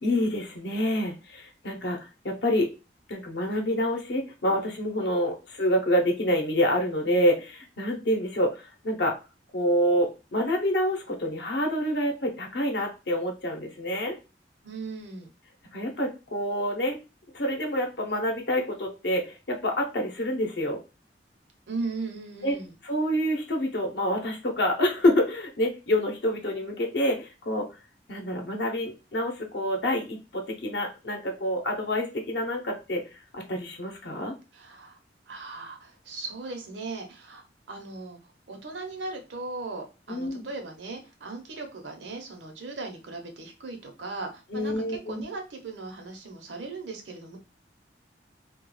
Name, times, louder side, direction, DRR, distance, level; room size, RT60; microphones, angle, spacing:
voice 1, 0.0-2.0 2.2-2.7 3.1-9.2 9.5-14.2 15.7-17.0 17.3-20.8 22.4-22.5 22.8-27.7 28.1-33.0 33.3-34.3 40.1-40.5 44.5-45.2, equal, 70° left, 2 dB, 0.7 m, -27 dB
voice 2, 14.6-15.3 21.7-22.8 34.5-35.0 35.3-47.4, right 3 dB, 85° right, 4 dB, 0.7 m, -38 dB
2.3 x 2.2 x 3.1 m, 0.29 s
head